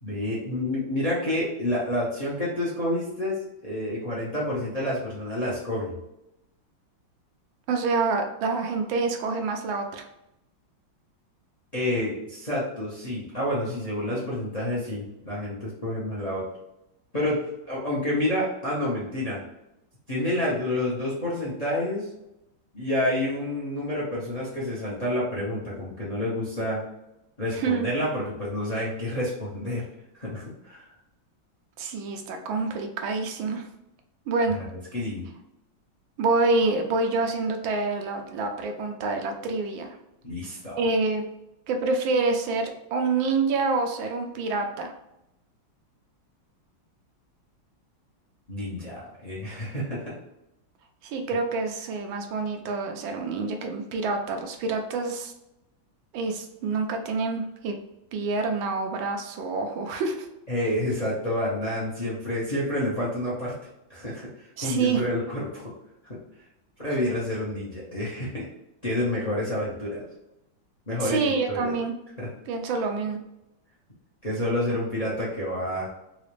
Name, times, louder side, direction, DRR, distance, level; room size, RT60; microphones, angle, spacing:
voice 1, 0.0-5.9 11.7-16.4 17.1-19.4 20.1-22.1 22.7-26.8 27.4-29.8 30.2-30.8 34.5-34.6 34.9-35.3 40.2-40.8 48.5-50.2 60.5-63.5 63.9-65.7 66.8-68.5 68.8-70.1 70.9-71.2 71.5-71.7 72.2-72.3 74.2-75.9, left 1 dB, 30° left, -6 dB, 0.7 m, -29 dB
voice 2, 7.7-10.0 27.5-27.9 31.8-33.7 34.3-34.6 36.2-40.0 40.8-41.2 41.7-44.9 51.0-55.3 56.1-57.7 58.1-60.3 64.6-65.0 71.0-71.9 72.5-73.2, right 3 dB, 80° right, 4 dB, 1.3 m, -27 dB
3.9 x 2.4 x 3.2 m, 0.88 s
omnidirectional pair, 2.2 m